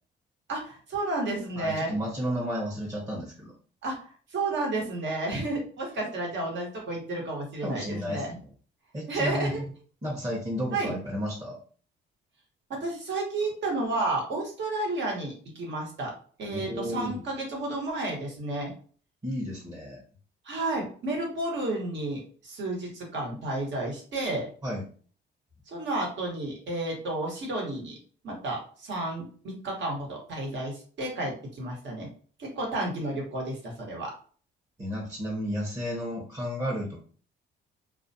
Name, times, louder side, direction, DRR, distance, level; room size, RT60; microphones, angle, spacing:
voice 1, 0.5-1.9 3.8-4.0 4.3-8.4 9.1-9.6 10.7-10.9 12.7-16.1 16.4-18.7 20.4-24.5 25.7-28.0 28.2-32.1 32.4-34.1, right 2 dB, 65° right, -1 dB, 1.2 m, -31 dB
voice 2, 1.6-3.5 7.6-8.5 8.9-9.6 10.0-11.6 16.5-17.2 19.2-20.0 24.6-24.9 34.8-37.0, equal, 20° right, -4 dB, 0.8 m, -32 dB
2.3 x 2.2 x 2.6 m, 0.42 s
cardioid pair, 90°, 20 cm